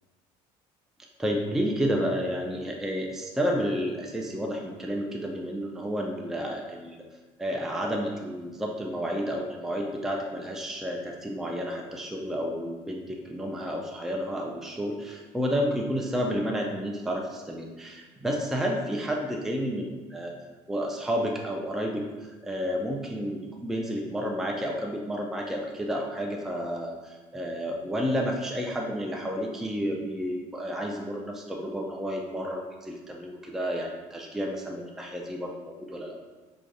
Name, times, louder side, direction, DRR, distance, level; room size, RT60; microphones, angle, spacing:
voice 1, 1.2-7.0 7.4-20.3 20.7-36.2, equal, 5° right, 0 dB, 0.4 m, -31 dB
6.0 x 2.6 x 2.3 m, 1.2 s
cardioid pair, 120°, 13 cm